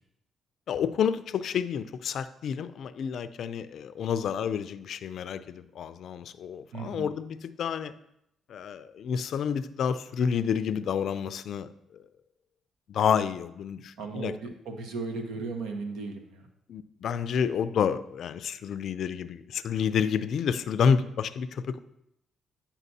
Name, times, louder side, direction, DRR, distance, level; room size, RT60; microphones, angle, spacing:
voice 1, 0.7-7.9 8.5-11.7 12.9-14.3 16.7-21.8, left 7 dB, 65° left, 13 dB, 0.4 m, -29 dB
voice 2, 6.7-7.1 14.0-16.5, right 4 dB, 90° right, 5 dB, 0.9 m, -36 dB
9.1 x 5.8 x 2.7 m, 0.79 s
cardioid pair, 90°, 0 cm